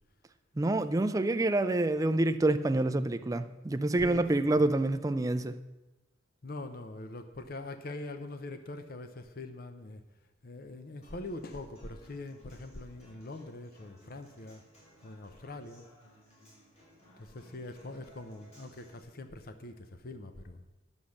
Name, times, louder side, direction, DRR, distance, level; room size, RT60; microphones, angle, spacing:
voice 1, 0.6-5.6, right 2 dB, 15° right, 10 dB, 0.4 m, -27 dB
voice 2, 4.0-4.7 6.4-10.0 10.4-14.6 15.0-15.9 17.2-20.6, left 2 dB, 50° left, 8 dB, 0.7 m, -43 dB
Human voice / Acoustic guitar, 11.0-19.0, equal, 35° left, 4.2 m, -60 dB
10.0 x 7.2 x 6.4 m, 1.1 s
head